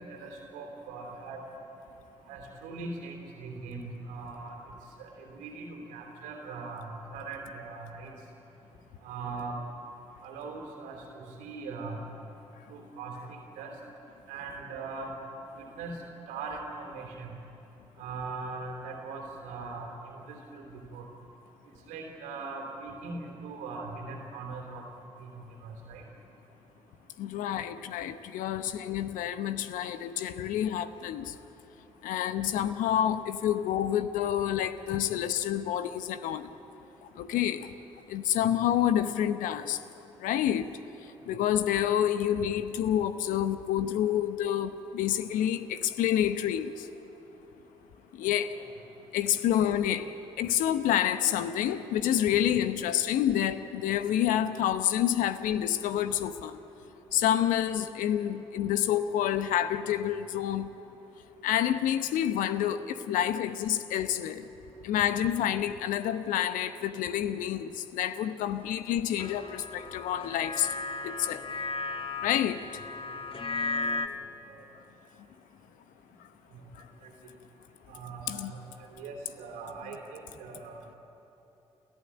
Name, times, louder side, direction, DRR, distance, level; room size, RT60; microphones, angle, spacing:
voice 1, 0.1-1.4 2.3-4.6 5.0-8.1 9.0-9.6 10.2-12.0 12.7-13.7 14.3-15.1 15.7-16.0 16.3-17.3 18.0-20.6 20.9-21.1 21.9-24.8 25.2-25.3 25.6-26.0 48.5-48.6 74.5-74.6 77.0-77.1 77.9-78.6 79.0-80.8, right 4 dB, 80° right, 2 dB, 3.3 m, -40 dB
voice 2, 27.2-31.3 32.0-36.5 37.2-37.7 38.1-39.8 40.2-40.7 41.3-46.9 48.1-48.5 49.1-50.1 50.4-56.6 57.1-60.7 61.4-64.4 64.8-70.7 71.0-71.4 72.2-72.6 78.3-78.5, left 10 dB, 75° left, 12 dB, 0.9 m, -28 dB
sound 1, 69.2-74.1, left 3 dB, 40° left, 1.5 m, -35 dB
29.0 x 14.0 x 8.9 m, 3.0 s
hypercardioid pair, 40°, 14 cm